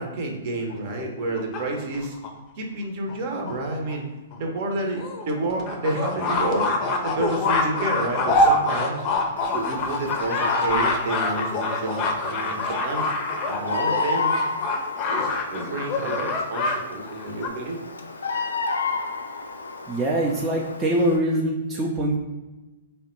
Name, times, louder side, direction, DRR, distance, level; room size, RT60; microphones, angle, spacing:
voice 1, 0.0-2.2 2.6-4.0 4.4-6.7 7.0-9.0 9.5-13.1 13.5-14.4 15.1-17.8, right 2 dB, 45° right, 1 dB, 0.9 m, -29 dB
sound 1, 0.7-2.3 3.1-3.2 3.5-3.6 3.9-4.0 4.3-4.4 4.9-16.8 17.1-17.5, left 2 dB, 35° left, 0.6 m, -25 dB
Bird vocalization bird call bird song, 9.4-21.2, left 4 dB, 80° left, 0.4 m, -31 dB
voice 2, 19.9-22.2, right 1 dB, 15° right, -3 dB, 0.5 m, -23 dB
3.5 x 2.2 x 4.3 m, 1.1 s
figure-of-eight pair, 115°, 0 cm